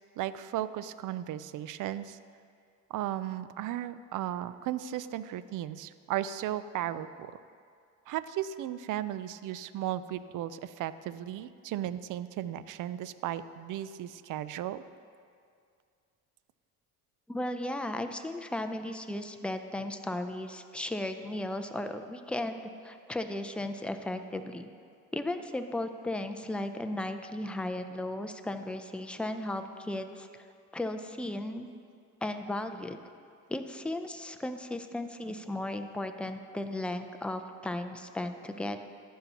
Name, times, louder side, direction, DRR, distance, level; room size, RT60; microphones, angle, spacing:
voice 1, 0.2-2.2 2.9-7.4 8.1-14.8, right 12 dB, 55° right, 14 dB, 0.5 m, -35 dB
voice 2, 17.3-24.7 25.1-30.3 30.7-31.7 32.2-33.0 33.5-38.8, left 1 dB, 5° left, 7 dB, 0.5 m, -35 dB
14.5 x 5.6 x 2.9 m, 2.3 s
supercardioid pair, 75°, 37 cm